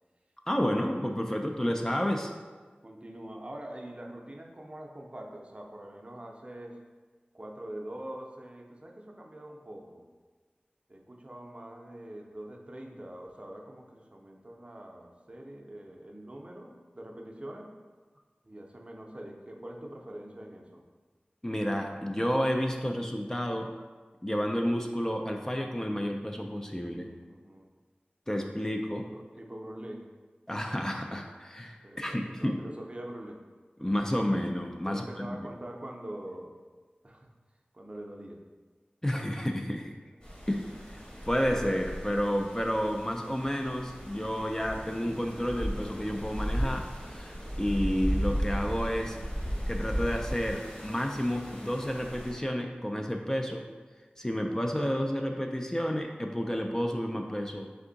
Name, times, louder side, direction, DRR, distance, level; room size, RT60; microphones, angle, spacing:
voice 1, 0.5-2.3 21.4-23.7 24.2-27.1 28.3-29.1 30.5-32.6 33.8-35.5 39.0-39.9 40.5-49.2 49.7-53.6 54.2-57.7, equal, 15° left, 2 dB, 0.3 m, -31 dB
voice 2, 1.3-1.8 2.8-6.8 7.3-10.1 10.9-17.7 18.4-20.8 26.9-27.7 28.9-30.0 31.8-33.4 34.8-36.5 37.0-37.3 37.7-38.4, right 1 dB, 35° right, 1 dB, 0.5 m, -44 dB
sound 1, 40.2-52.3, equal, 35° left, 1.4 m, -35 dB
3.6 x 3.4 x 3.8 m, 1.4 s
wide cardioid pair, 50°, 3 cm